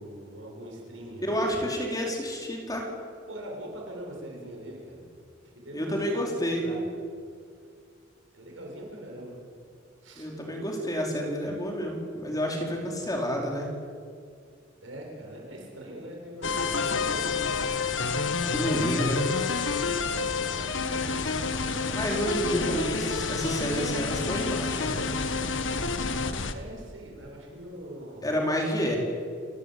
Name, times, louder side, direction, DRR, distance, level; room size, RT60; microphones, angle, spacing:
voice 1, 0.0-1.4 1.7-1.9 3.3-5.0 5.6-6.9 8.3-9.4 10.0-10.3 14.8-17.9 19.6-21.7 26.5-28.4, right 1 dB, 85° right, 0 dB, 7.2 m, -43 dB
voice 2, 1.2-2.9 5.7-6.7 10.2-13.7 18.5-19.2 21.9-25.1 28.2-29.0, equal, 20° left, 0 dB, 4.7 m, -29 dB
sound 1, 16.4-26.5, left 4 dB, 75° left, 1.6 m, -29 dB
30.0 x 17.5 x 8.6 m, 2.2 s
head